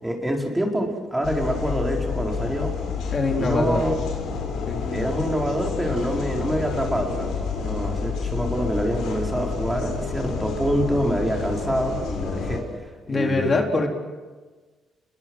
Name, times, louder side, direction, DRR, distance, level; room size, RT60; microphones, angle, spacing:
voice 1, 0.0-2.7 3.4-4.0 4.9-12.6 13.1-13.6, equal, 10° right, 1 dB, 4.6 m, -26 dB
sound 1, 1.2-12.6, left 5 dB, 80° left, 6.2 m, -29 dB
voice 2, 3.1-3.8 4.7-5.1 5.9-6.0 13.1-13.9, left 3 dB, 35° left, 2 dB, 3.9 m, -24 dB
29.5 x 22.0 x 6.4 m, 1.3 s
cardioid pair, 90°, 0 cm